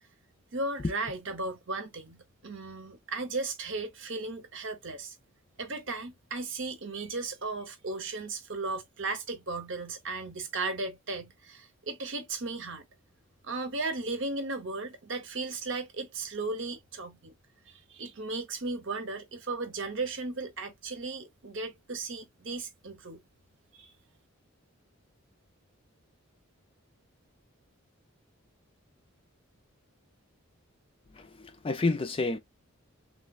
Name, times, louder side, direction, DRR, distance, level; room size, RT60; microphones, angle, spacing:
voice 1, 0.5-5.2 5.6-12.9 13.4-17.3 17.7-23.2 23.7-23.9, right 3 dB, 60° right, 0.8 m, -36 dB
voice 2, 31.1-32.4, left 3 dB, 25° left, 0.4 m, -30 dB
3.3 x 3.1 x 2.3 m
head